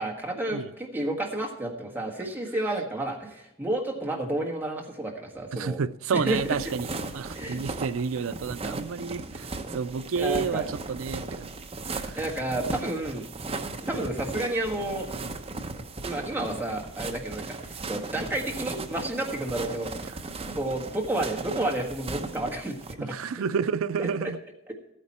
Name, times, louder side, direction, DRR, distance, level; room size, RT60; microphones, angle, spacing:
voice 1, 0.0-5.8 6.1-6.6 7.3-7.6 10.2-10.7 12.1-13.2 13.8-15.1 16.0-17.6 17.9-20.1 20.4-23.2 24.0-24.1 24.7-24.8, right 1 dB, 10° right, 1.6 m, -31 dB
voice 2, 5.5-6.9 7.1-9.5 9.7-11.5 12.0-12.2 23.0-24.4, right 6 dB, 70° right, 0.4 m, -30 dB
sound 1, 6.3-22.9, right 3 dB, 30° right, 0.8 m, -37 dB
14.0 x 9.1 x 4.2 m
head